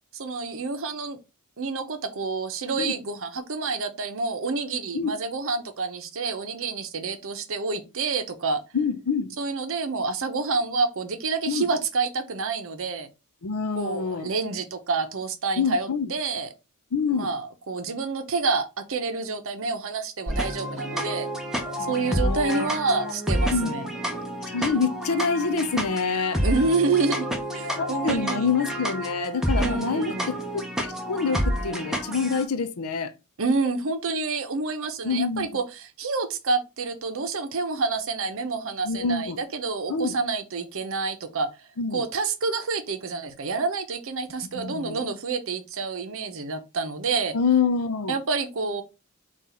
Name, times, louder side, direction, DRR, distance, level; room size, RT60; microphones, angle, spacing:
voice 1, 0.1-1.2 1.6-8.6 9.4-13.1 13.8-16.5 17.1-21.3 21.9-23.9 26.4-27.3 27.5-28.5 29.6-30.3 33.4-41.5 41.9-47.3 48.1-48.8, right 4 dB, 65° right, 0.7 m, -28 dB
voice 2, 8.7-9.4 11.5-11.7 13.4-14.3 15.6-16.1 16.9-17.3 21.8-23.1 23.5-23.7 24.5-26.4 27.6-33.1 35.0-35.5 38.8-39.4 39.9-40.2 41.8-42.1 44.5-45.0 47.3-48.1, left 5 dB, 75° left, 0.6 m, -26 dB
sound 1, 20.3-32.4, equal, ahead, 0.7 m, -29 dB
3.9 x 2.4 x 4.2 m
head